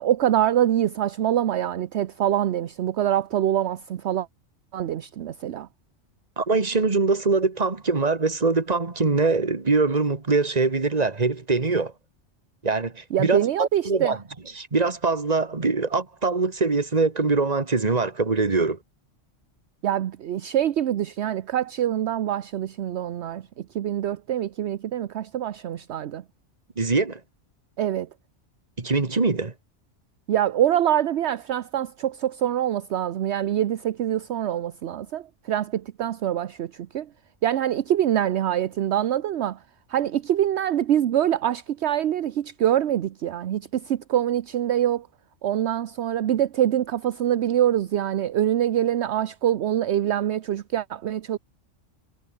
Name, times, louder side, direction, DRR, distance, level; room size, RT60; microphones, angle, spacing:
voice 1, 0.0-4.3 4.7-5.7 13.1-14.1 19.8-23.4 23.7-26.2 27.8-28.1 30.3-37.1 37.4-39.6 39.9-45.1 45.4-51.4, right 11 dB, 65° right, 1.0 m, -24 dB
voice 2, 6.4-11.9 12.6-14.2 14.5-18.8 26.8-27.2 28.8-29.5, right 3 dB, 30° right, 1.8 m, -23 dB
omnidirectional pair, 1.3 m